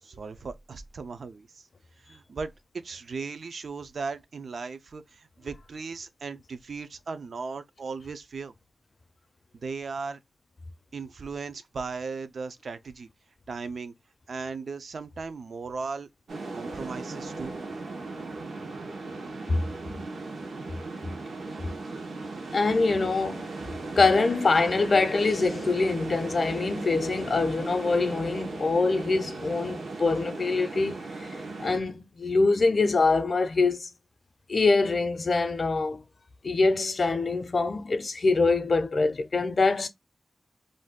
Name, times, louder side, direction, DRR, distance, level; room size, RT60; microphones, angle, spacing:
voice 1, 0.0-1.7 2.0-8.5 9.5-10.2 10.9-13.1 13.5-13.9 14.3-16.1 16.5-17.6, right 4 dB, 60° right, 0.4 m, -37 dB
sound 1, 16.3-31.8, right 3 dB, 85° right, 0.8 m, -37 dB
voice 2, 22.5-23.5 23.9-31.1 31.6-33.9 34.5-36.0 36.4-39.9, left 3 dB, 45° left, 0.5 m, -24 dB
2.6 x 2.2 x 3.4 m
wide cardioid pair, 150°, 0 cm